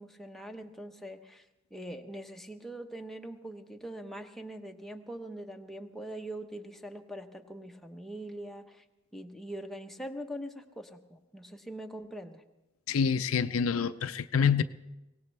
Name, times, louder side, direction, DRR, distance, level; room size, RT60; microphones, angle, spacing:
voice 1, 0.0-1.4 1.7-8.8 9.1-12.4, right 1 dB, ahead, 0.9 m, -42 dB
voice 2, 12.9-14.6, left 6 dB, 70° left, 0.5 m, -27 dB
23.0 x 18.5 x 3.4 m
head